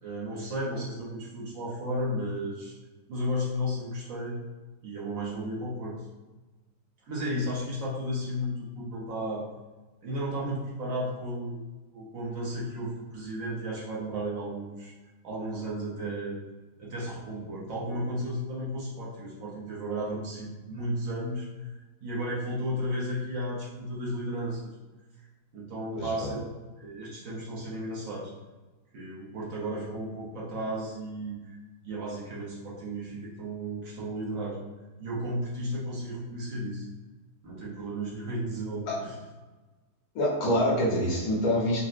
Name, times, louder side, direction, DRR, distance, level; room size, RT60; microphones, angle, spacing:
voice 1, 0.0-2.7 3.1-4.4 4.8-6.0 7.1-9.5 10.0-11.6 11.9-14.9 15.2-16.4 16.8-21.5 22.0-24.7 25.5-26.5 26.8-28.3 28.9-31.4 31.8-34.6 35.0-36.9 37.4-39.1, equal, 60° right, -6 dB, 1.1 m, -33 dB
voice 2, 26.0-26.3 38.9-39.0 40.1-41.8, left 1 dB, 75° left, -4 dB, 1.3 m, -26 dB
4.1 x 2.0 x 2.4 m, 1.2 s
omnidirectional pair, 1.7 m